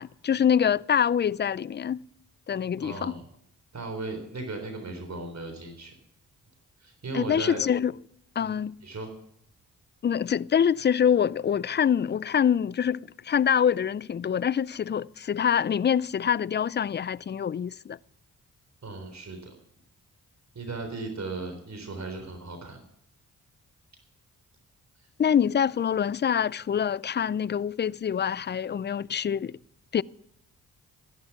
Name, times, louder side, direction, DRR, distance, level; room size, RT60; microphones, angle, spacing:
voice 1, 0.0-2.0 2.5-3.1 7.1-7.9 8.4-8.7 10.0-18.0 25.2-29.6 29.9-30.0, left 8 dB, 30° left, 0.4 m, -25 dB
voice 2, 2.8-3.2 3.7-5.9 6.8-7.6 8.4-8.6 8.8-9.1 18.8-19.6 20.5-22.8, right 3 dB, 45° right, 3.8 m, -36 dB
15.0 x 11.5 x 5.9 m
supercardioid pair, 50°, 36 cm